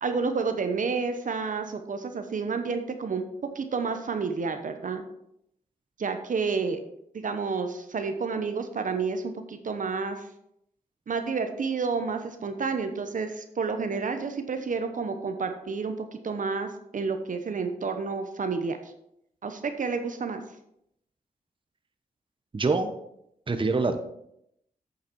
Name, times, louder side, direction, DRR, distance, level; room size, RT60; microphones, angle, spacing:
voice 1, 0.0-3.2 3.5-5.1 6.0-6.8 7.1-10.3 11.1-15.9 16.2-18.8 19.4-20.4, right 5 dB, 60° right, 7 dB, 0.9 m, -30 dB
voice 2, 22.5-22.9 23.5-24.0, right 3 dB, 35° right, 7 dB, 0.9 m, -25 dB
8.8 x 6.5 x 4.5 m, 0.77 s
cardioid pair, 60°, 15 cm